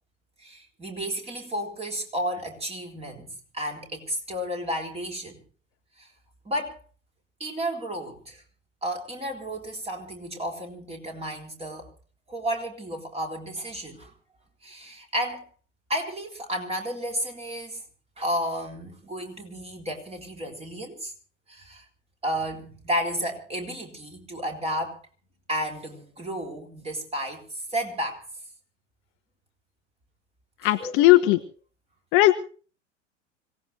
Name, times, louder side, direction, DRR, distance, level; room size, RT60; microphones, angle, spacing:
voice 1, 0.4-5.4 6.0-6.1 6.5-6.8 7.4-8.4 8.8-11.9 12.3-14.1 14.6-15.4 15.9-17.8 18.2-21.1 21.5-21.8 22.2-25.0 25.5-28.2 30.8-31.1, equal, 15° right, 3 dB, 3.9 m, -32 dB
voice 2, 30.6-31.4 32.1-32.3, left 17 dB, 35° left, 10 dB, 0.9 m, -17 dB
25.5 x 17.5 x 2.8 m, 0.39 s
figure-of-eight pair, 90°, 37 cm